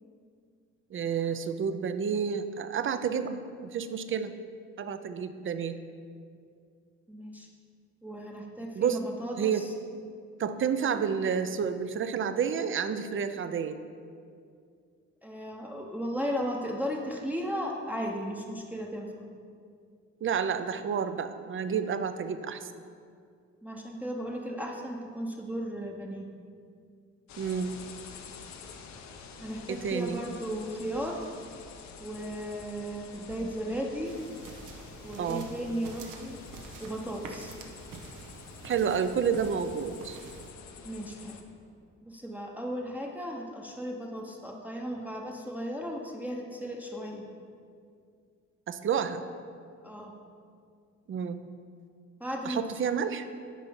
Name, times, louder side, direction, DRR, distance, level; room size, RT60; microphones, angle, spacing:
voice 1, 0.9-4.3 4.8-5.7 8.8-9.0 9.4-9.7 10.4-13.8 20.2-22.7 27.4-27.8 29.7-30.2 35.2-35.4 38.6-40.2 48.7-49.2 51.1-51.4 52.4-53.3, right 7 dB, 40° right, 10 dB, 0.5 m, -30 dB
voice 2, 7.1-7.5 8.0-9.7 15.2-19.3 23.6-26.3 29.4-31.3 32.0-34.1 35.0-36.4 36.8-37.5 40.8-41.4 42.0-47.3 49.8-50.1 52.2-52.6, equal, 5° right, 0 dB, 0.8 m, -35 dB
sound 1, 27.3-41.4, left 5 dB, 65° left, 0.8 m, -48 dB
sound 2, 34.1-40.5, right 4 dB, 80° right, 0.9 m, -47 dB
9.3 x 4.1 x 5.4 m, 2.2 s
cardioid pair, 90°, 30 cm